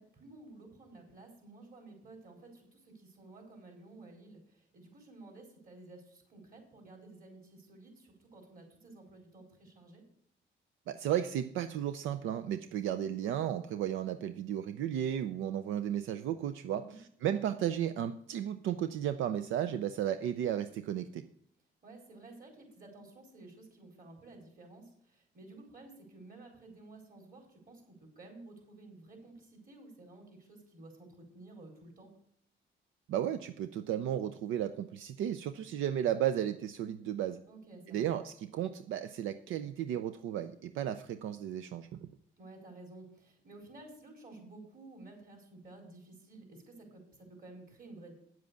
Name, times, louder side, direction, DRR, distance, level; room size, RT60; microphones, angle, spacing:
voice 1, 0.0-10.0 16.7-17.0 21.8-32.2 37.5-38.1 42.4-48.1, right 2 dB, 45° right, 2 dB, 4.4 m, -53 dB
voice 2, 10.9-21.2 33.1-37.4 37.9-42.1, right 10 dB, 85° right, 10 dB, 0.6 m, -34 dB
9.3 x 7.6 x 6.9 m, 0.68 s
cardioid pair, 90°, 20 cm